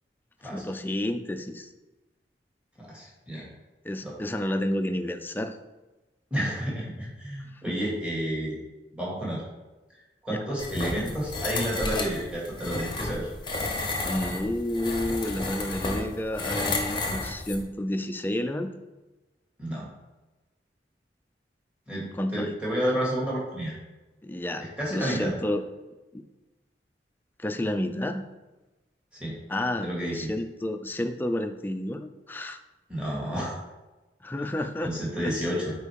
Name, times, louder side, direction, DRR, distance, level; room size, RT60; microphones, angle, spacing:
voice 1, 0.4-1.7 3.8-5.6 7.7-7.8 10.3-10.4 14.0-18.7 22.1-22.5 24.2-24.7 24.9-25.6 26.1-26.2 27.4-28.3 29.5-32.6 34.2-35.6, left 1 dB, 10° left, 6 dB, 0.4 m, -30 dB
voice 2, 2.8-3.5 4.0-4.1 6.3-8.6 8.9-9.4 10.2-13.3 19.6-19.9 21.9-22.0 22.3-23.7 24.8-25.3 29.1-29.4 29.8-30.3 32.9-33.5 34.8-35.7, equal, 5° right, -5 dB, 2.2 m, -30 dB
sound 1, 10.6-17.6, left 2 dB, 25° left, 0.8 m, -32 dB
8.1 x 4.5 x 3.6 m, 1.1 s
head